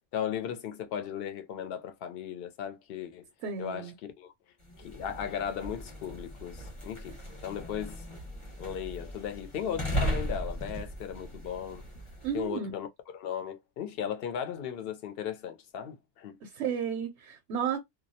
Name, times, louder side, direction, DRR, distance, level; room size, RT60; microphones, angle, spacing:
voice 1, 0.1-3.3 3.6-3.9 4.2-4.3 4.8-7.2 7.4-8.0 8.6-11.8 12.3-12.9 13.1-16.4, left 8 dB, 65° left, 0.7 m, -36 dB
voice 2, 3.4-3.9 12.2-12.7 16.4-17.8, right 7 dB, 80° right, 0.8 m, -32 dB
sound 1, 4.6-12.5, equal, 30° left, 0.9 m, -37 dB
2.3 x 2.0 x 2.6 m
omnidirectional pair, 1.1 m